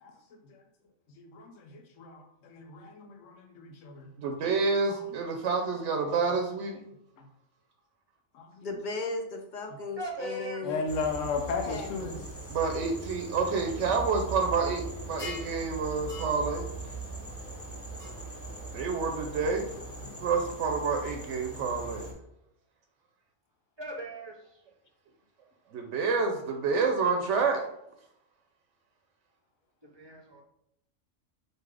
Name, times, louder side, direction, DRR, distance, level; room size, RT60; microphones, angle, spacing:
voice 1, 1.2-4.1 4.9-5.0 8.3-8.7 10.6-12.2, left 4 dB, 90° left, 3 dB, 1.0 m, -35 dB
voice 2, 4.2-6.8 12.5-16.7 18.7-19.7 20.0-22.1 25.7-27.7, right 4 dB, 75° right, 3 dB, 0.9 m, -28 dB
voice 3, 8.6-10.8 11.6-12.6, left 3 dB, 55° left, 3 dB, 0.5 m, -37 dB
voice 4, 10.0-10.6 11.6-11.8 23.8-24.6 29.8-30.4, right 1 dB, 25° right, -1 dB, 0.7 m, -39 dB
sound 1, 10.9-22.1, right 3 dB, 15° left, 0.8 m, -40 dB
sound 2, 15.2-15.6 16.1-16.3 18.0-18.1, left 4 dB, 35° left, 1.6 m, -40 dB
3.9 x 2.7 x 4.7 m, 0.78 s
omnidirectional pair, 1.3 m